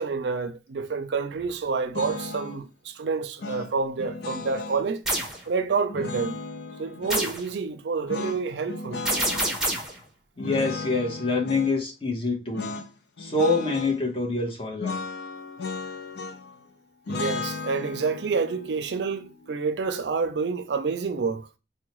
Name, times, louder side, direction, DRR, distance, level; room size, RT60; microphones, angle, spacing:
voice 1, 0.0-5.0 5.5-6.4 6.8-9.0 17.1-21.5, right 4 dB, 70° right, 0.4 m, -28 dB
sound 1, 1.9-2.6 3.4-4.9 5.9-7.3 8.1-9.6 10.4-11.7 12.5-12.9 13.2-14.0 14.8-16.6 17.1-20.1, left 3 dB, 70° left, 0.5 m, -35 dB
sound 2, 5.0-5.4 7.1-7.5 9.0-10.0, right 1 dB, ahead, 0.8 m, -26 dB
voice 2, 10.4-12.7 13.2-15.0, left 3 dB, 30° left, 1.0 m, -26 dB
4.4 x 2.2 x 3.0 m
head